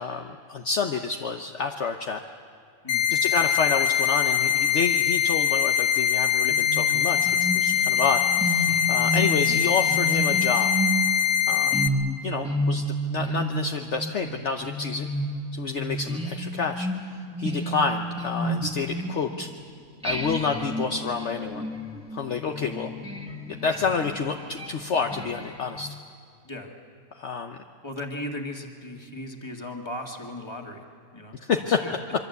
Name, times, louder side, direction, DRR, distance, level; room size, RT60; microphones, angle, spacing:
voice 1, 0.0-2.2 3.1-10.7 11.5-11.7 12.2-15.1 15.5-19.5 20.0-21.7 22.1-22.9 23.5-25.9 27.1-27.6 31.5-31.8, left 5 dB, 55° left, 4 dB, 1.2 m, -29 dB
sound 1, 2.9-11.9, left 9 dB, 70° left, 1.4 m, -23 dB
sound 2, 6.5-19.6 20.0-25.9, right 1 dB, 5° right, 1.8 m, -31 dB
voice 2, 27.8-30.8 31.1-32.0, left 1 dB, 20° left, 1 dB, 2.2 m, -37 dB
26.0 x 23.5 x 8.1 m, 2.2 s
omnidirectional pair, 1.5 m